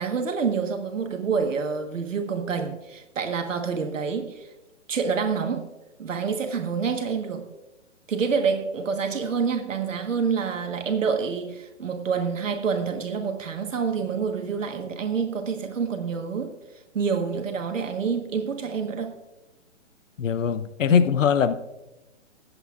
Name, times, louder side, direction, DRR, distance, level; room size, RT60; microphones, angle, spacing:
voice 1, 0.0-4.5 4.9-5.7 6.0-7.4 8.1-16.5 16.9-19.2 20.9-21.0, right 5 dB, 90° right, 1.4 m, -27 dB
voice 2, 20.2-21.6, left 7 dB, 85° left, 0.8 m, -21 dB
21.0 x 8.0 x 2.4 m
hypercardioid pair, 145°, 37 cm